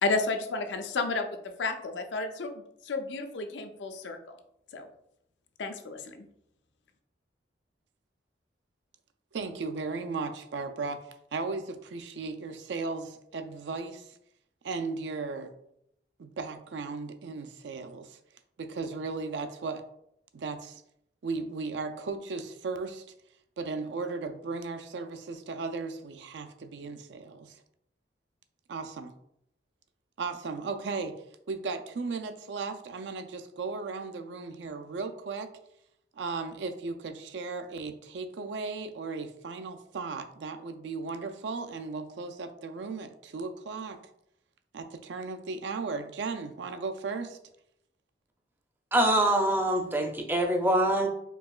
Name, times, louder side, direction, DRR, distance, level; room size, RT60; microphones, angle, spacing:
voice 1, 0.0-1.3 1.6-4.2 4.7-4.9 5.6-6.3, left 3 dB, 90° left, 6 dB, 0.5 m, -31 dB
voice 2, 9.3-11.0 11.3-14.1 14.6-15.5 16.2-18.2 18.6-19.8 20.3-20.8 21.2-23.0 23.6-27.5 28.7-29.1 30.2-31.2 31.5-35.5 36.2-44.0 44.7-47.4, right 4 dB, 80° right, 7 dB, 0.4 m, -36 dB
voice 3, 48.9-51.1, right 1 dB, 10° right, 2 dB, 0.4 m, -24 dB
4.6 x 2.8 x 2.3 m, 0.75 s
head